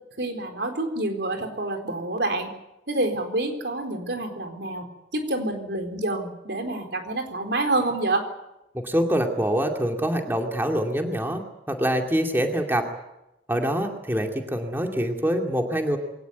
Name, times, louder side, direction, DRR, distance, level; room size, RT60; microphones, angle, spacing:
voice 1, 0.2-2.5 2.9-8.2, right 2 dB, 75° right, 5 dB, 4.2 m, -27 dB
voice 2, 8.8-12.8 13.5-16.0, equal, 15° right, 3 dB, 2.4 m, -25 dB
22.5 x 18.5 x 9.4 m, 0.91 s
head